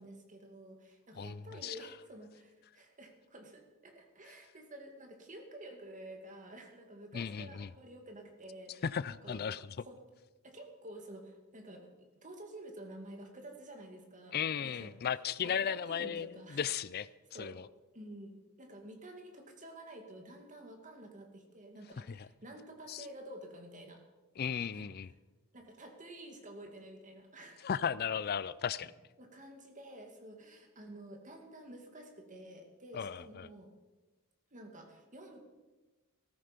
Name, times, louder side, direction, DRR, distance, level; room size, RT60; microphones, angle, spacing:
voice 1, 0.0-9.4 9.8-10.0 10.4-11.9 12.2-14.9 15.4-16.6 17.3-17.6 17.9-18.3 18.6-24.0 24.7-24.9 25.5-27.6 29.2-33.7 34.5-35.4, right 1 dB, 35° right, 3 dB, 2.2 m, -50 dB
voice 2, 1.2-1.8 7.1-7.7 8.8-9.8 14.3-17.1 17.4-17.7 22.0-22.3 22.9-23.1 24.4-25.1 27.6-28.9 32.9-33.5, left 7 dB, 45° left, 17 dB, 0.4 m, -36 dB
15.0 x 14.0 x 5.2 m, 1.2 s
head